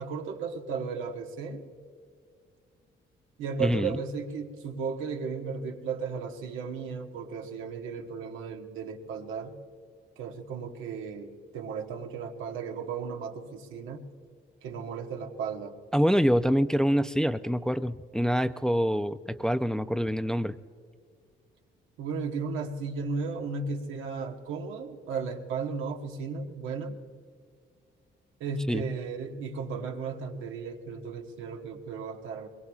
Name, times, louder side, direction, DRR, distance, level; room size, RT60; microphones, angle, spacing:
voice 1, 0.0-1.6 3.4-9.6 10.2-14.1 14.6-15.7 22.0-26.9 28.4-32.5, right 5 dB, 90° right, 2 dB, 1.3 m, -35 dB
voice 2, 3.6-4.0 15.9-20.5 28.7-28.9, equal, 5° left, 10 dB, 0.4 m, -25 dB
22.5 x 21.5 x 2.4 m, 2.3 s
cardioid pair, 90°, 20 cm